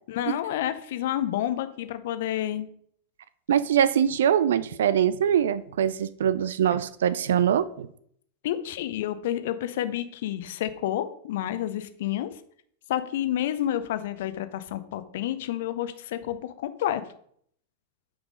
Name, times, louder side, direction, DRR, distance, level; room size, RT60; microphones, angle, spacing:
voice 1, 0.1-2.7 8.4-12.3 12.9-17.0, left 12 dB, 55° left, 12 dB, 0.7 m, -29 dB
voice 2, 3.5-7.9, right 9 dB, 60° right, 16 dB, 0.4 m, -23 dB
8.3 x 4.9 x 5.1 m, 0.65 s
figure-of-eight pair, 90°, 0 cm